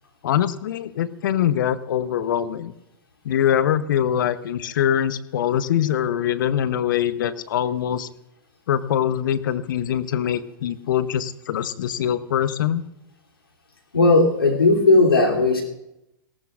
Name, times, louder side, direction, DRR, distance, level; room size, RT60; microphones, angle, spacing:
voice 1, 0.2-2.7 3.2-8.1 8.7-12.8, left 10 dB, 65° left, 14 dB, 0.8 m, -23 dB
voice 2, 13.9-15.6, left 2 dB, 85° left, -1 dB, 3.0 m, -16 dB
18.5 x 17.5 x 2.5 m, 0.87 s
figure-of-eight pair, 105°, 12 cm